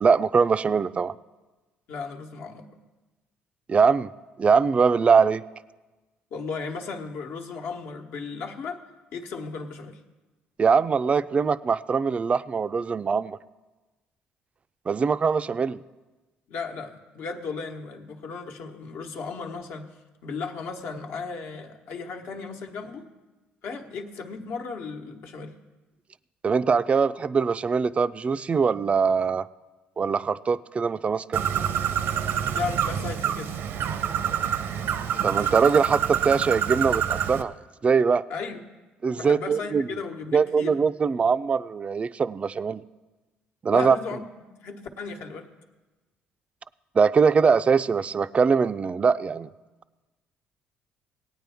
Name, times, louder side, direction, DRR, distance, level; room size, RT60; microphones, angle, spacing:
voice 1, 0.0-1.1 3.7-4.1 4.4-5.4 10.6-13.4 14.9-15.8 26.4-29.5 30.0-31.4 35.2-37.5 37.8-38.2 39.0-39.9 40.3-42.8 43.6-44.0 47.0-49.5, right 5 dB, 30° right, 15 dB, 0.3 m, -22 dB
voice 2, 1.9-2.7 6.3-8.8 9.1-10.0 16.5-19.9 20.2-23.1 23.6-25.5 32.5-33.5 38.3-38.6 39.2-40.7 43.7-44.3 44.6-45.5, left 4 dB, 70° left, 3 dB, 1.1 m, -35 dB
Bird, 31.3-37.4, right 9 dB, 70° right, 0.7 m, -27 dB
18.5 x 9.0 x 3.5 m, 1.2 s
supercardioid pair, 85°, 4 cm